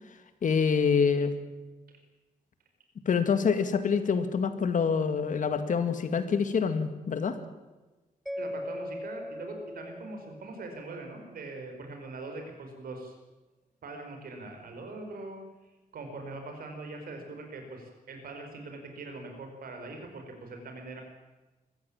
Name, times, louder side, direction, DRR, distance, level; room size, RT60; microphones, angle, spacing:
voice 1, 0.4-1.3 3.1-7.4, left 6 dB, 60° left, 10 dB, 2.1 m, -26 dB
Mallet percussion, 8.3-11.2, left 1 dB, ahead, 0.6 m, -40 dB
voice 2, 8.3-13.1 13.8-15.4 15.9-21.0, right 2 dB, 80° right, 4 dB, 5.0 m, -42 dB
22.5 x 15.0 x 8.9 m, 1.1 s
wide cardioid pair, 135°, 15 cm